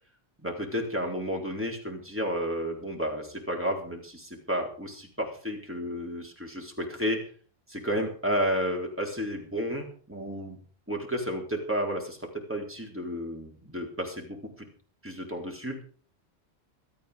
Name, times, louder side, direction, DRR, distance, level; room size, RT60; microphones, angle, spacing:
voice 1, 0.4-7.2 7.7-10.6 10.9-12.2 12.5-14.7 15.0-15.8, equal, 10° right, 0 dB, 4.0 m, -32 dB
17.0 x 13.0 x 5.1 m, 0.42 s
omnidirectional pair, 1.1 m